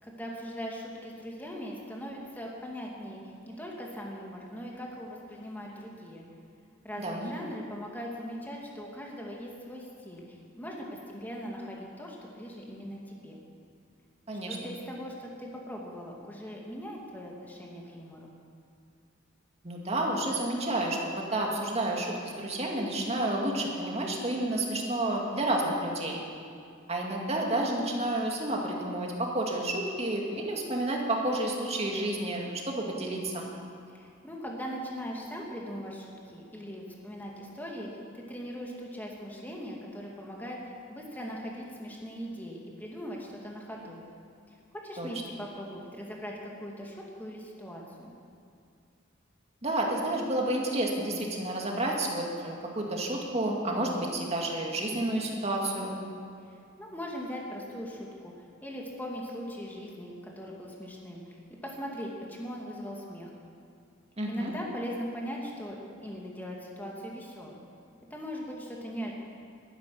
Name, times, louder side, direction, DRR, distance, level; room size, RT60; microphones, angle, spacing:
voice 1, 0.0-3.2 3.5-6.2 6.8-13.4 14.5-18.3 33.9-44.0 44.5-48.1 56.5-58.3 58.6-61.4 61.6-63.3 64.3-67.6 68.1-69.1, equal, 10° left, -2 dB, 2.3 m, -40 dB
voice 2, 7.0-7.3 14.3-14.6 19.6-26.2 26.9-33.5 45.0-45.1 49.6-56.0 64.2-64.5, right 1 dB, 30° right, -1 dB, 2.2 m, -30 dB
12.5 x 10.5 x 9.9 m, 2.4 s
head